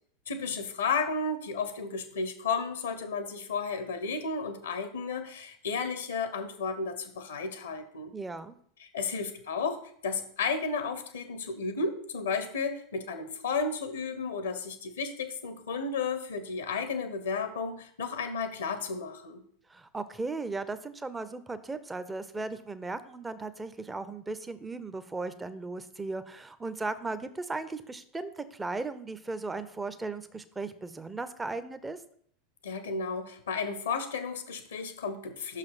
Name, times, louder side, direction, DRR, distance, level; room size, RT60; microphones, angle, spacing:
voice 1, 0.3-8.1 8.8-9.8 10.0-19.4 32.6-35.6, left 4 dB, 70° left, 10 dB, 0.8 m, -33 dB
voice 2, 8.1-8.6 19.7-32.0, right 3 dB, 10° right, 12 dB, 0.6 m, -36 dB
6.0 x 4.9 x 5.7 m, 0.63 s
figure-of-eight pair, 85°, 0 cm